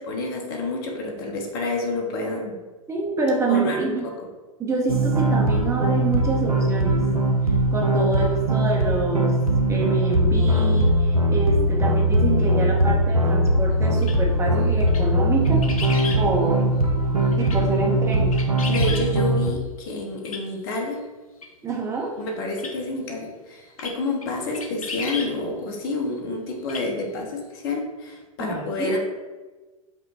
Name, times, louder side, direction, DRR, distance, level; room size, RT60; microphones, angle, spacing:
voice 1, 0.1-2.6 3.5-3.9 18.7-21.0 22.2-29.0, left 2 dB, 45° left, 1 dB, 1.0 m, -29 dB
voice 2, 2.9-4.1 4.6-7.0 7.7-9.4 9.7-15.7 16.1-16.6 17.3-18.4 21.6-22.1 28.4-29.0, right 3 dB, 15° right, -1 dB, 0.7 m, -26 dB
sound 1, 4.9-19.5, right 1 dB, 85° right, 0.6 m, -21 dB
sound 2, 14.0-14.2 14.9-15.0 15.4-16.2 17.3-17.6 18.1-19.0 20.2-20.4 21.4-21.5 22.6-22.7 23.8-23.9 24.2-24.3 24.5-25.3 26.6-26.9 27.1-27.2, left 4 dB, 75° left, 0.7 m, -33 dB
5.2 x 2.1 x 4.7 m, 1.2 s
figure-of-eight pair, 95°, 18 cm